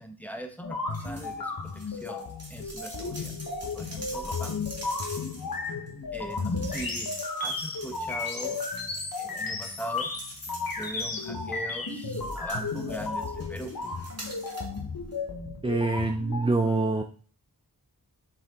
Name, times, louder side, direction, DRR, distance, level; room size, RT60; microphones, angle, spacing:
voice 1, 0.0-1.5 1.9-3.3 3.7-4.5 6.1-7.1 7.4-8.6 9.2-10.1 10.7-13.7, right 1 dB, 5° left, 5 dB, 1.5 m, -40 dB
sound 1, 0.6-16.5, left 3 dB, 75° left, 1.4 m, -34 dB
sound 2, 0.9-1.3 1.6-11.4 11.9-14.8 15.1-15.2, right 1 dB, 45° right, 2.3 m, -45 dB
sound 3, 4.4-6.6 7.0-9.2 9.5-11.7 12.1-14.0, left 3 dB, 50° left, 1.4 m, -50 dB
voice 2, 15.6-17.0, right 3 dB, 15° right, 5 dB, 0.7 m, -25 dB
7.4 x 5.9 x 4.0 m, 0.40 s
wide cardioid pair, 50°, 35 cm